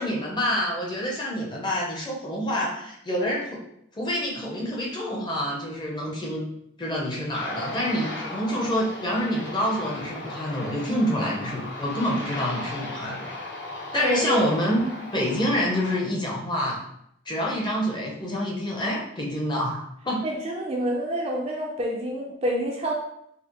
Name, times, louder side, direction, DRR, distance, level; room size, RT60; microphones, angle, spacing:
voice 1, 0.0-3.6 4.0-6.5 6.8-13.3 13.9-14.8 15.1-16.8 17.3-20.2, equal, 20° left, -3 dB, 0.7 m, -27 dB
Aircraft, 7.3-16.0, left 1 dB, 55° left, 0.9 m, -37 dB
voice 2, 13.9-14.4 14.8-15.0 20.2-22.9, equal, 30° right, -1 dB, 0.4 m, -28 dB
4.7 x 2.0 x 3.0 m, 0.75 s
head